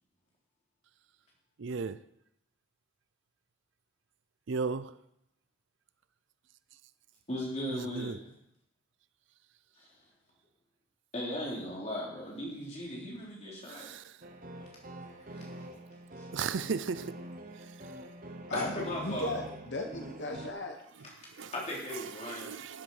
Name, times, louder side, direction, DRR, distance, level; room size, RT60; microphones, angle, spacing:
voice 1, 1.6-2.0 4.5-4.9 7.7-8.2 13.7-14.2 16.3-17.2 17.6-17.7 21.3-21.5 21.9-22.8, right 5 dB, 60° right, 0.5 m, -36 dB
voice 2, 7.3-8.2 9.8-9.9 11.1-13.9 14.6-14.7 15.3-15.5 16.2-16.3 18.5-19.3 21.5-22.6, left 1 dB, 30° left, 3.8 m, -37 dB
sound 1, 14.2-20.5, right 1 dB, 40° right, 1.1 m, -45 dB
voice 3, 19.0-20.8, left 2 dB, 55° left, 1.1 m, -36 dB
14.0 x 7.8 x 5.6 m
head